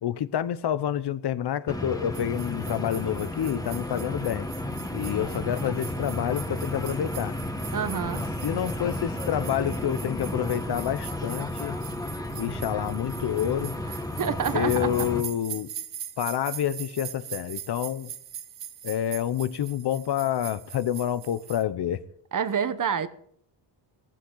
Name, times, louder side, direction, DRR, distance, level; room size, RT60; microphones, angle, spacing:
voice 1, 0.0-4.5 4.9-7.3 8.4-11.8 12.4-13.7 14.5-15.7 16.2-18.1 18.8-22.0, left 10 dB, 60° left, 0.8 m, -28 dB
sound 1, 1.7-15.2, left 1 dB, 10° left, 1.4 m, -33 dB
sound 2, 2.1-21.6, right 10 dB, 70° right, 1.3 m, -42 dB
voice 2, 7.7-8.2 13.9-14.9 22.3-23.1, right 7 dB, 45° right, 1.0 m, -28 dB
15.5 x 15.0 x 3.9 m
cardioid pair, 100°, 45 cm